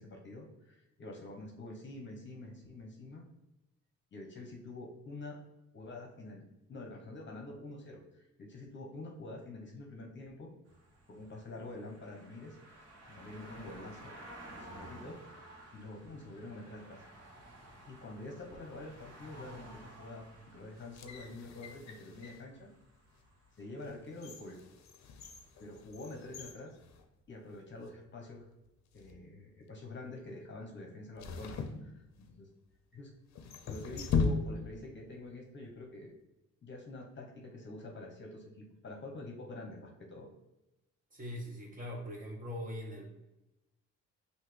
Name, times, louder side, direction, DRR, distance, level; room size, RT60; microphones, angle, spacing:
voice 1, 0.0-3.3 4.1-5.4 5.7-10.5 11.1-14.1 14.5-15.2 15.7-17.0 17.9-22.7 23.6-24.6 25.6-26.8 27.3-28.5 28.9-32.5 32.9-33.1 33.7-36.1 36.6-40.3, left 2 dB, 40° left, 0 dB, 0.9 m, -47 dB
sound 1, 10.7-25.2 25.6-25.7, right 1 dB, 55° right, 1.4 m, -54 dB
sound 2, 20.8-22.5 23.1-23.3 23.8-27.6 27.9-28.0 28.8-29.2 31.2-32.5 33.3-34.9 35.1-35.2, left 5 dB, 65° left, 0.6 m, -38 dB
voice 2, 41.1-43.1, left 1 dB, 25° right, -1 dB, 1.3 m, -41 dB
5.7 x 2.7 x 3.2 m, 0.96 s
cardioid pair, 90°, 30 cm